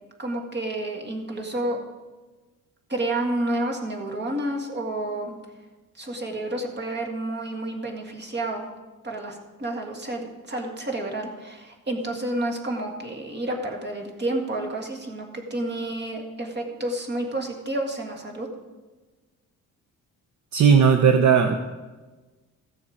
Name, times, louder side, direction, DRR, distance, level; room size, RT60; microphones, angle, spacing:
voice 1, 0.2-1.8 2.9-5.3 6.0-8.6 9.0-18.5, right 1 dB, 30° right, 2 dB, 1.9 m, -30 dB
voice 2, 20.5-21.6, right 7 dB, 55° right, 6 dB, 0.8 m, -16 dB
15.0 x 7.0 x 5.1 m, 1.2 s
cardioid pair, 120°, 34 cm